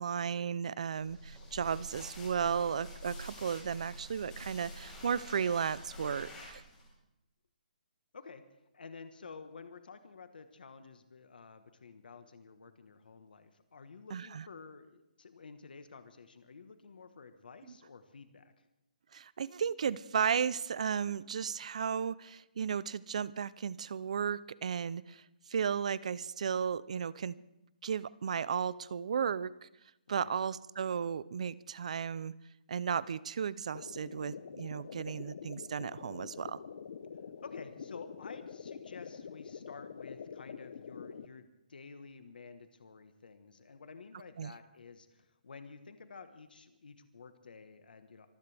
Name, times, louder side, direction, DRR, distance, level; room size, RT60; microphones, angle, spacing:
voice 1, 0.0-6.6 14.1-14.4 19.1-27.4 27.8-29.7 30.1-32.3 32.7-36.6 44.4-44.5, right 7 dB, 45° right, 20 dB, 0.5 m, -34 dB
sound 1, 1.0-6.9, equal, 10° left, 4.8 m, -47 dB
voice 2, 8.7-18.7 30.1-30.3 37.4-48.3, left 5 dB, 75° left, 9 dB, 1.4 m, -51 dB
sound 2, 33.7-41.3, left 6 dB, 45° left, 0.8 m, -46 dB
25.0 x 15.0 x 3.5 m, 0.90 s
hypercardioid pair, 175°, 5 cm